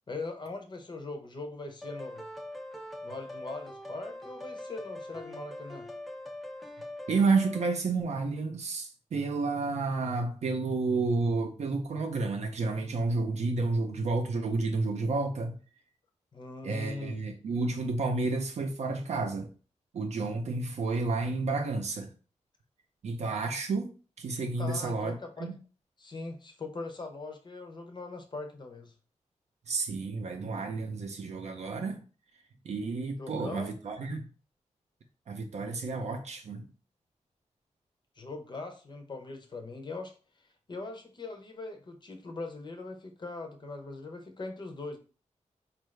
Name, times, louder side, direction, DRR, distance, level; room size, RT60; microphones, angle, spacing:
voice 1, 0.1-2.3 3.0-5.9 16.3-17.2 24.6-25.5 26.0-28.9 33.2-33.8 38.2-45.0, left 3 dB, 40° left, 0.6 m, -41 dB
sound 1, 1.8-7.7, left 1 dB, ahead, 0.4 m, -42 dB
voice 2, 7.1-15.5 16.6-19.5 19.9-22.1 23.0-23.9 24.2-25.6 29.7-32.0 32.6-34.3 35.3-36.7, right 3 dB, 65° right, 0.5 m, -30 dB
4.5 x 2.5 x 3.1 m
wide cardioid pair, 175°, 12 cm